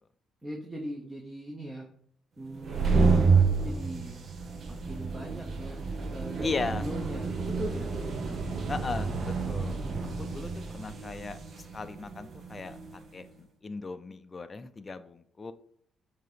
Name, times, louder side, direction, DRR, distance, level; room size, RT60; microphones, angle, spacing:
voice 1, 0.4-1.9 2.4-4.2 4.7-8.0, equal, 10° right, -1 dB, 1.1 m, -40 dB
sound 1, 2.5-13.0, right 4 dB, 50° right, 1.0 m, -29 dB
voice 2, 6.4-6.8 8.7-9.8 10.2-12.7 13.1-15.5, left 4 dB, 30° left, 9 dB, 0.5 m, -37 dB
7.6 x 2.9 x 5.0 m, 0.64 s
cardioid pair, 90°, 0 cm